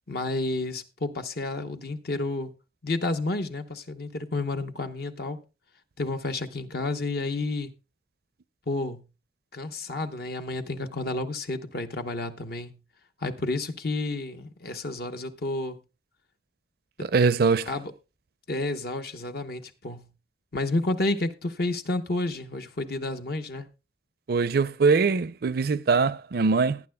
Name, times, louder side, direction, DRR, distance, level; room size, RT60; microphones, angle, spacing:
voice 1, 0.1-2.5 2.8-5.4 6.0-7.7 8.7-9.0 9.5-12.7 13.2-15.8 17.0-17.1 17.7-17.9 18.5-20.1 20.5-23.7, left 2 dB, 60° left, 0.9 m, -30 dB
voice 2, 17.1-17.7 24.3-26.8, right 4 dB, 60° right, 0.5 m, -22 dB
18.0 x 9.6 x 2.2 m
head